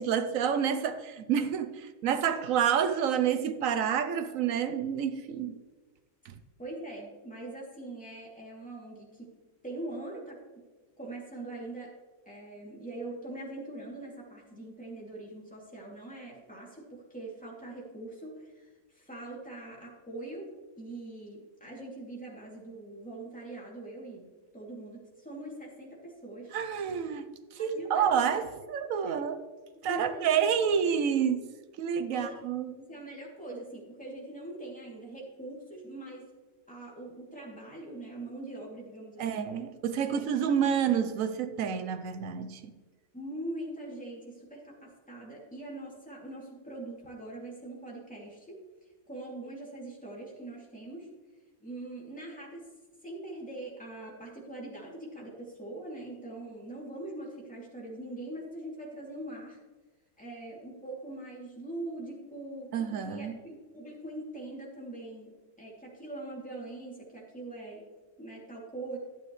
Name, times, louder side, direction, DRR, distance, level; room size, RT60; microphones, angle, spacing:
voice 1, 0.0-5.6 6.2-6.4 26.5-27.3 27.5-29.4 29.8-31.4 31.8-32.7 39.2-42.7 62.7-63.4, right 8 dB, 85° right, 1.1 m, -29 dB
voice 2, 6.6-9.3 9.6-10.6 11.0-11.9 12.3-20.5 20.8-24.2 24.5-26.5 27.6-28.7 29.1-29.2 29.8-30.3 32.1-32.3 32.8-36.2 36.7-39.5 40.0-40.2 43.1-48.6 49.1-51.1 51.6-52.6 53.0-59.6 60.2-65.3 65.6-67.8 68.2-69.0, right 2 dB, 5° left, 2.6 m, -42 dB
12.0 x 8.7 x 3.2 m
omnidirectional pair, 1.4 m